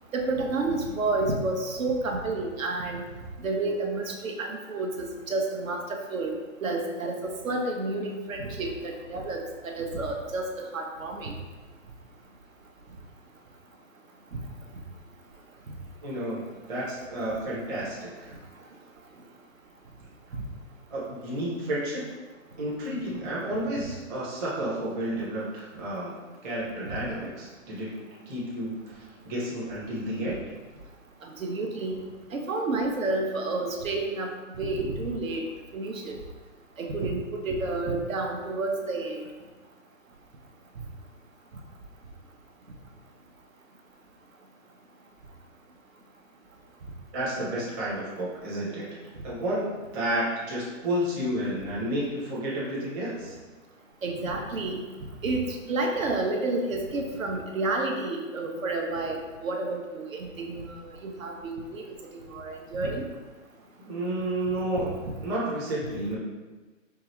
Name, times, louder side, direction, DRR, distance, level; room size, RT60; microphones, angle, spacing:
voice 1, 0.1-3.0 3.4-6.3 6.6-11.3 31.2-34.3 34.6-35.4 35.7-36.2 36.8-39.2 54.0-54.9 55.2-60.7 61.0-62.0 62.3-63.0 64.7-64.9, right 2 dB, 80° right, 2 dB, 0.8 m, -30 dB
voice 2, 16.0-18.3 20.9-22.1 22.6-26.2 26.4-27.9 28.3-30.4 47.1-48.9 49.2-49.7 49.9-53.4 63.8-66.2, right 1 dB, 15° right, -7 dB, 0.6 m, -31 dB
4.6 x 2.4 x 3.0 m, 1.3 s
hypercardioid pair, 140°, 40 cm